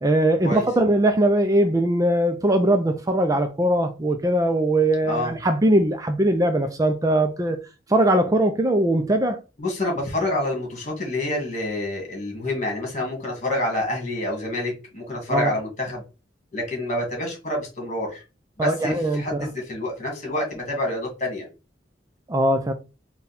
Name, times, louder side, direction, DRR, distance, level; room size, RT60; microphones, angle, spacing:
voice 1, 0.0-7.6 7.9-9.4 15.3-15.5 18.6-19.5 22.3-22.7, right 1 dB, 20° right, 0.4 m, -21 dB
voice 2, 9.6-16.0 16.5-18.2 18.6-21.5, left 1 dB, 45° left, 1.8 m, -27 dB
4.0 x 2.3 x 4.0 m
head